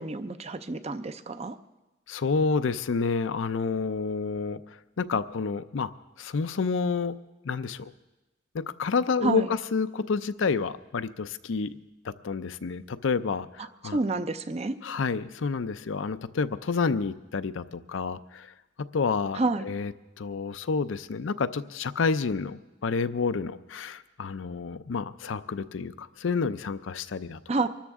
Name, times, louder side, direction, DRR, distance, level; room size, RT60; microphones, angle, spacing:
voice 1, 0.0-1.6 9.2-9.5 13.9-14.8 19.4-19.7 27.5-27.7, right 3 dB, 30° right, 11 dB, 0.5 m, -28 dB
voice 2, 2.1-5.9 6.2-7.1 7.4-7.9 8.5-11.8 12.0-14.0 14.8-18.5 18.9-19.9 20.2-27.4, left 4 dB, 75° left, 12 dB, 0.5 m, -29 dB
24.5 x 13.0 x 3.6 m, 1.0 s
head